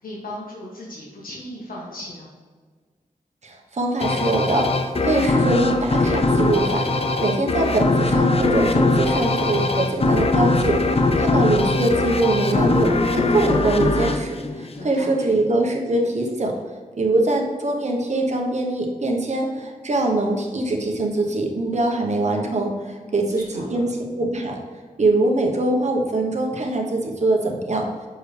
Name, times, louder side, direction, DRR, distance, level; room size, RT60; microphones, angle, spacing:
voice 1, 0.0-2.3 14.7-15.3 23.1-23.8, left 1 dB, 85° left, -4 dB, 1.6 m, -37 dB
voice 2, 3.4-16.5 17.0-24.6 25.0-27.8, right 2 dB, 55° right, 1 dB, 1.1 m, -23 dB
sound 1, 4.0-15.2, left 2 dB, 45° left, 0.5 m, -21 dB
6.4 x 4.6 x 3.4 m, 1.5 s
cardioid pair, 65°, 14 cm